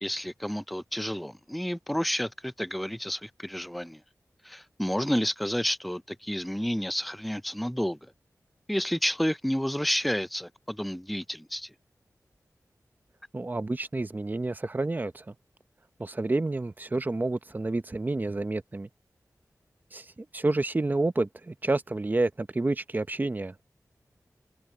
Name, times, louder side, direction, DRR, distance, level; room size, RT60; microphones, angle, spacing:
voice 1, 0.0-4.0 4.4-8.1 8.7-11.7, equal, ahead, 0.4 m, -30 dB
voice 2, 13.3-15.3 16.0-18.9 19.9-23.6, right 2 dB, 30° right, 0.8 m, -29 dB
wide cardioid pair, 70°, 6 cm